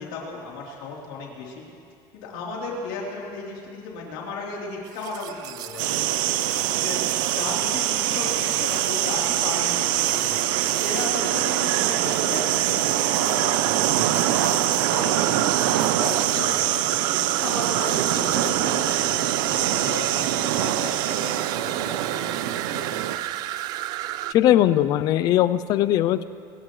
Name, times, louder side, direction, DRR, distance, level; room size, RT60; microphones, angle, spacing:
voice 1, 0.0-1.7 2.1-7.0 7.3-13.7 13.9-15.5 16.0-17.0 17.4-23.3, left 3 dB, 85° left, -3 dB, 3.6 m, -35 dB
sound 1, 4.9-24.3, right 14 dB, 40° right, 0.3 m, -33 dB
sound 2, 5.8-23.2, right 13 dB, 80° right, 0.7 m, -24 dB
voice 2, 24.3-26.2, left 12 dB, 35° left, 15 dB, 0.4 m, -19 dB
26.0 x 15.0 x 3.2 m, 2.4 s
cardioid pair, 180°, 11 cm